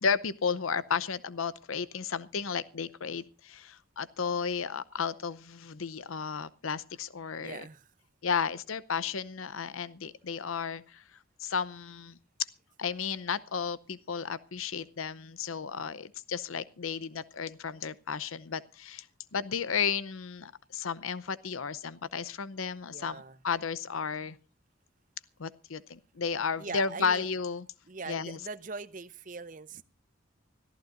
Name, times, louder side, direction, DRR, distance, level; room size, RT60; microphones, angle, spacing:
voice 1, 0.0-7.6 8.2-11.0 11.4-12.2 12.8-19.1 19.3-24.4 25.4-27.6 28.1-28.4, left 6 dB, 90° left, 17 dB, 0.7 m, -33 dB
voice 2, 7.4-7.9 22.9-23.4 26.6-27.3 27.9-29.8, right 4 dB, 40° right, 12 dB, 0.7 m, -41 dB
25.0 x 14.5 x 2.6 m, 0.34 s
head